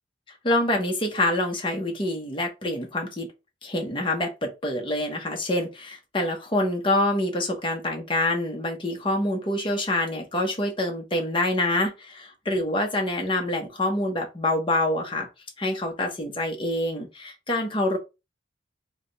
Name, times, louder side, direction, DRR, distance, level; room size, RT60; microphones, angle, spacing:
voice 1, 0.4-3.3 3.6-15.3 15.6-18.0, left 1 dB, 25° left, 0.9 m, -26 dB
3.4 x 2.2 x 4.0 m
head